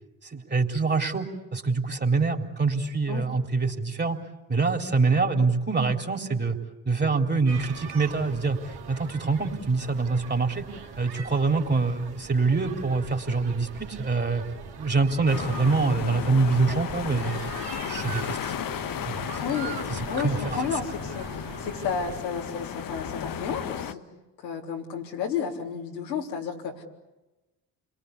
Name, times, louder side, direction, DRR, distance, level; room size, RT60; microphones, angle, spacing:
voice 1, 0.3-4.2 4.5-6.6 6.9-10.7 11.0-14.4 14.8-17.5 17.8-18.5 19.0-19.2 19.9-20.6, right 4 dB, 20° right, 4 dB, 3.9 m, -25 dB
sound 1, 7.5-22.2, right 6 dB, 50° right, 3.6 m, -41 dB
sound 2, 15.3-23.9, left 9 dB, 40° left, 1.4 m, -34 dB
voice 2, 19.4-19.8 20.1-24.0 24.4-26.8, left 6 dB, 80° left, -1 dB, 3.9 m, -32 dB
30.0 x 23.0 x 8.5 m, 1.0 s
figure-of-eight pair, 50°, 50 cm